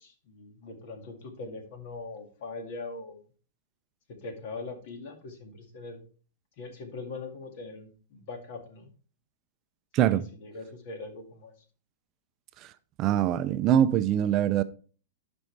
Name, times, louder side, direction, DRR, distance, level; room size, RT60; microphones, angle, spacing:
voice 1, 0.0-3.2 4.1-6.0 6.6-8.9 10.0-11.5, left 3 dB, 55° left, 2.1 m, -41 dB
voice 2, 9.9-10.2 12.6-12.7 13.0-14.6, right 10 dB, 35° right, 0.5 m, -23 dB
12.5 x 5.3 x 3.3 m
hypercardioid pair, 140°, 0 cm